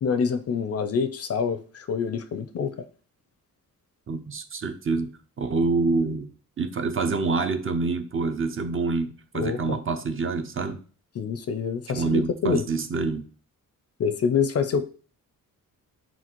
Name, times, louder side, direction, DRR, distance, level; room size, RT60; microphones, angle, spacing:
voice 1, 0.0-2.8 9.3-9.8 11.2-12.6 14.0-14.8, left 6 dB, 45° left, 0.4 m, -26 dB
voice 2, 4.1-5.1 5.4-6.3 6.6-10.8 11.9-13.2, right 4 dB, 35° right, 0.5 m, -26 dB
5.8 x 2.3 x 2.9 m
cardioid pair, 100°, 35 cm